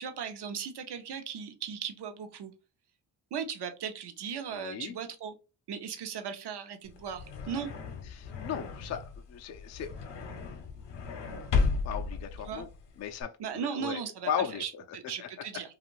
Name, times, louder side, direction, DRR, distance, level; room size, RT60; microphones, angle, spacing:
voice 1, 0.0-2.5 3.3-5.3 5.7-7.7 12.5-12.7 13.4-15.7, right 7 dB, 55° right, 0.7 m, -37 dB
voice 2, 4.5-4.9 8.1-9.9 11.8-12.7 13.0-14.8 15.2-15.3, left 8 dB, 35° left, 0.4 m, -36 dB
sound 1, 6.9-13.2, left 4 dB, 60° left, 0.8 m, -34 dB
2.5 x 2.4 x 3.0 m
cardioid pair, 75°, 48 cm